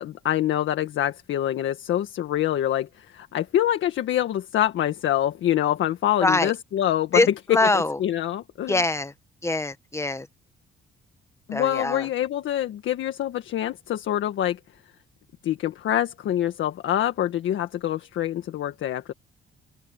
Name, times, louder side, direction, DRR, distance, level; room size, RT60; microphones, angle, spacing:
voice 1, 0.0-7.2 7.7-8.8 11.5-14.6 15.4-19.1, left 12 dB, 75° left, 1.7 m, -25 dB
voice 2, 6.2-6.5 7.1-8.0 8.7-9.1 9.4-10.3 11.5-12.1, left 2 dB, 15° left, 1.4 m, -23 dB
cardioid pair, 90°, 20 cm